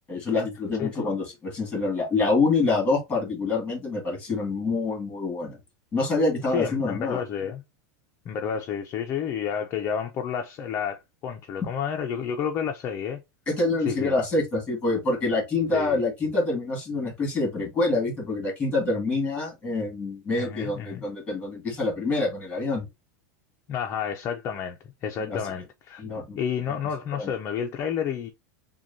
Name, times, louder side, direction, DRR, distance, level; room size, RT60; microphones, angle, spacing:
voice 1, 0.1-5.6 5.9-7.2 13.5-22.9 25.2-25.4 26.0-26.4 27.2-27.3, left 3 dB, 15° left, 1.9 m, -26 dB
voice 2, 6.5-7.6 8.3-13.2 13.9-14.2 15.7-16.0 20.4-21.0 23.7-26.0 26.4-28.3, left 8 dB, 30° left, 0.5 m, -30 dB
6.0 x 2.3 x 2.6 m
supercardioid pair, 155°, 10 cm